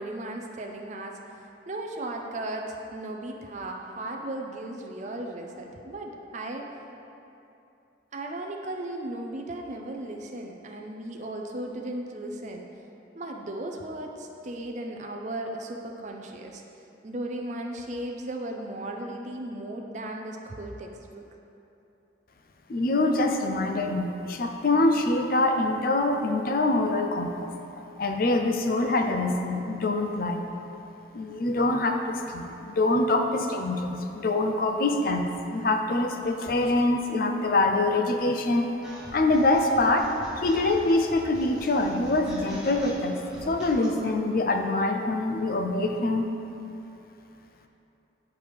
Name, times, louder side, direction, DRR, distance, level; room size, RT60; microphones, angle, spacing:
voice 1, 0.0-6.7 8.1-12.7 13.1-16.6 17.0-21.2, right 1 dB, 40° right, 1 dB, 0.4 m, -36 dB
voice 2, 22.7-27.5 28.0-30.5 31.1-38.7 39.1-40.1 40.4-46.3, left 2 dB, 50° left, 4 dB, 0.5 m, -25 dB
sound 1, 38.8-44.0, equal, 5° right, 1.1 m, -44 dB
9.5 x 4.7 x 3.4 m, 2.8 s
head